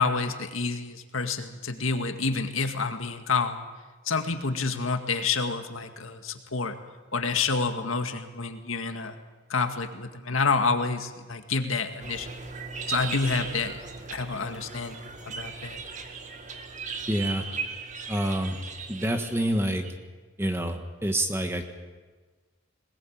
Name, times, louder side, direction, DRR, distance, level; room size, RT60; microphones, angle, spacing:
voice 1, 0.0-3.6 4.1-6.8 7.1-9.2 9.5-12.3 12.9-13.8 14.1-15.8, left 4 dB, 80° left, 7 dB, 2.0 m, -28 dB
sound 1, 12.0-19.9, right 5 dB, 35° right, 2.0 m, -38 dB
voice 2, 17.1-17.4 18.1-18.6 18.9-19.8 20.4-21.6, right 1 dB, 10° right, 5 dB, 1.6 m, -27 dB
21.0 x 20.5 x 8.7 m, 1.3 s
head